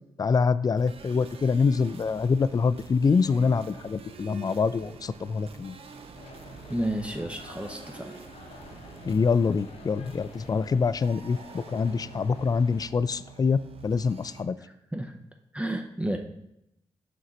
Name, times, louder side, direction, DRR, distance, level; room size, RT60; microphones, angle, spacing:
voice 1, 0.2-5.7 9.0-14.6, left 5 dB, 35° left, 16 dB, 0.3 m, -25 dB
sound 1, 0.7-14.4, right 5 dB, 65° right, 0.7 m, -47 dB
sound 2, 6.1-12.8, left 4 dB, 70° left, 0.8 m, -50 dB
voice 2, 6.7-8.1 14.9-15.2 15.5-16.2, right 1 dB, 10° right, 4 dB, 0.7 m, -31 dB
6.3 x 4.5 x 4.0 m, 0.83 s
supercardioid pair, 45°, 11 cm